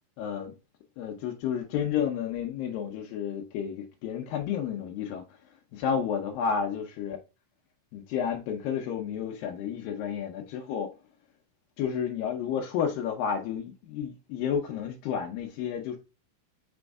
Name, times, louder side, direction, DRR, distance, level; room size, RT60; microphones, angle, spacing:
voice 1, 0.2-0.5 1.0-5.2 5.7-7.2 7.9-10.9 11.8-16.0, left 7 dB, 80° left, 2.5 m, -31 dB
6.1 x 4.4 x 3.5 m
omnidirectional pair, 4.1 m